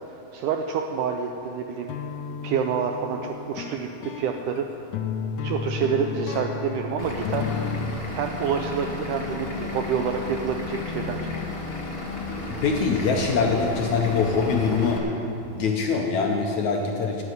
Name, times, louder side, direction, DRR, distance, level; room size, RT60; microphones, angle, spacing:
voice 1, 0.3-1.9 2.4-4.7 5.4-7.5 8.2-11.4, right 7 dB, 85° right, 4 dB, 1.8 m, -28 dB
sound 1, 1.9-8.0, left 6 dB, 90° left, 1.7 m, -32 dB
Vehicle / Engine, 7.0-15.0, left 2 dB, 35° left, 0.9 m, -33 dB
voice 2, 12.2-15.0 15.5-17.2, left 5 dB, 70° left, 1 dB, 1.9 m, -24 dB
13.0 x 7.7 x 9.5 m, 2.9 s
omnidirectional pair, 4.2 m